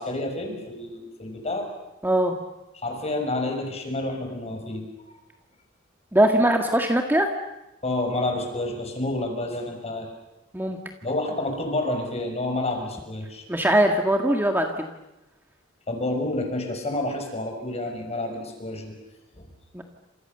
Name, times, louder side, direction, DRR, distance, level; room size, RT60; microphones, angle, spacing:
voice 1, 0.0-1.7 2.8-4.8 7.8-10.1 11.0-13.4 15.9-18.9 19.3-19.5, left 2 dB, 30° left, 4 dB, 6.5 m, -29 dB
voice 2, 2.0-2.3 6.1-7.3 10.5-10.8 13.5-14.9 19.7-19.8, right 1 dB, 10° right, 3 dB, 1.8 m, -21 dB
29.5 x 27.0 x 6.9 m, 0.97 s
head